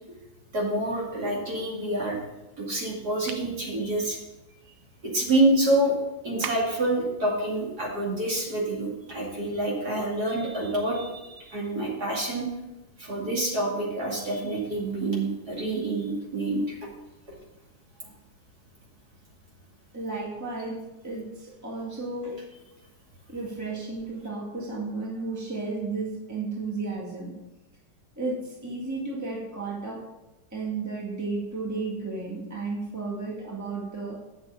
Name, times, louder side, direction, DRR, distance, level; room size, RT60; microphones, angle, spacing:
voice 1, 0.5-2.2 2.6-4.2 5.0-6.0 6.2-12.5 13.0-16.8 18.0-18.1, right 1 dB, 50° right, -4 dB, 3.0 m, -27 dB
sound 1, 3.3-3.5 6.4-6.9, right 10 dB, 75° right, 1.3 m, -37 dB
voice 2, 19.9-22.5 23.3-27.4 28.2-30.1 30.5-34.2, right 3 dB, 10° right, -3 dB, 1.8 m, -33 dB
8.4 x 6.4 x 6.2 m, 0.99 s
omnidirectional pair, 2.2 m